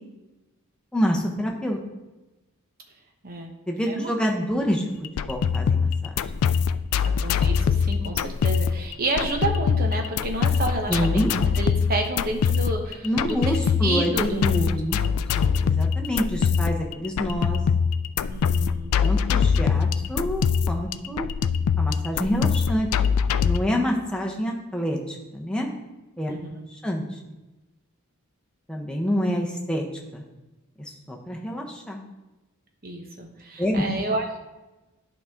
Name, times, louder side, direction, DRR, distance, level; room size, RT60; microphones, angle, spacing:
voice 1, 0.9-1.8 3.7-4.8 5.2-5.9 10.9-11.3 13.0-15.0 15.3-17.6 19.0-21.3 21.8-22.9 23.4-25.7 26.2-26.3 26.7-27.0 28.7-29.8 30.1-30.2 31.1-32.0 33.6-33.8, equal, 5° left, 0 dB, 0.9 m, -27 dB
sound 1, 5.0-23.6, left 6 dB, 90° left, 0.3 m, -23 dB
voice 2, 7.0-14.7 15.0-15.1 18.3-18.9 26.3-26.7 32.8-34.4, right 2 dB, 45° right, 2 dB, 1.1 m, -30 dB
11.0 x 5.1 x 3.6 m, 1.1 s
head